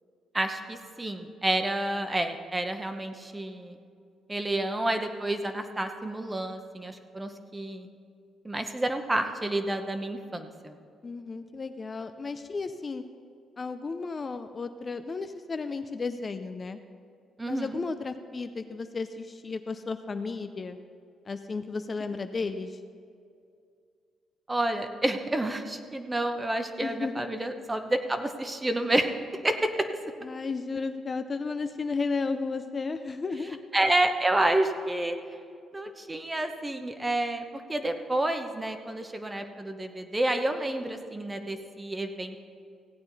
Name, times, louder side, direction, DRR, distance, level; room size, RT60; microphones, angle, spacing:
voice 1, 0.3-3.8 4.3-7.9 8.4-10.7 17.4-17.8 24.5-29.1 29.4-29.8 33.7-35.2 35.7-42.4, right 1 dB, 15° right, 7 dB, 0.9 m, -29 dB
voice 2, 11.0-13.0 13.6-16.8 17.5-20.8 21.3-22.8 26.8-27.3 30.2-33.6, left 4 dB, 35° left, 8 dB, 0.5 m, -33 dB
16.0 x 8.7 x 4.1 m, 2.3 s
cardioid pair, 90°, 0 cm